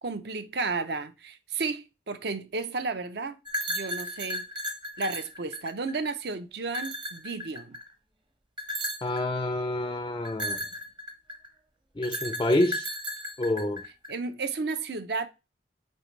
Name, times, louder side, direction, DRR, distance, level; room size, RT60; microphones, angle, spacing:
voice 1, 0.0-3.4 3.7-4.5 5.0-7.8 14.1-15.3, right 4 dB, 55° right, 0.6 m, -33 dB
sound 1, 3.5-6.1 6.7-7.9 8.6-9.2 10.2-11.5 12.0-14.1, equal, 25° right, 0.8 m, -34 dB
voice 2, 9.0-10.6 12.0-12.9 13.4-13.8, left 1 dB, 20° left, 0.4 m, -27 dB
8.3 x 4.2 x 3.2 m
head